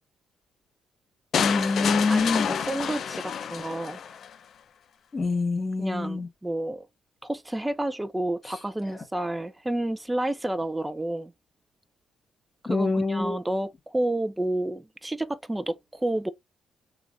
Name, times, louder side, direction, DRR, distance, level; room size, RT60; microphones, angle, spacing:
sound 1, 1.3-4.3, left 7 dB, 60° left, 0.4 m, -29 dB
voice 1, 1.4-2.5 5.1-6.3 12.6-13.3, left 3 dB, 30° left, 1.5 m, -25 dB
voice 2, 2.1-4.0 5.8-6.9 7.2-11.3 12.6-16.3, right 1 dB, 15° right, 0.5 m, -30 dB
3.1 x 2.4 x 2.6 m
supercardioid pair, 65°, 0 cm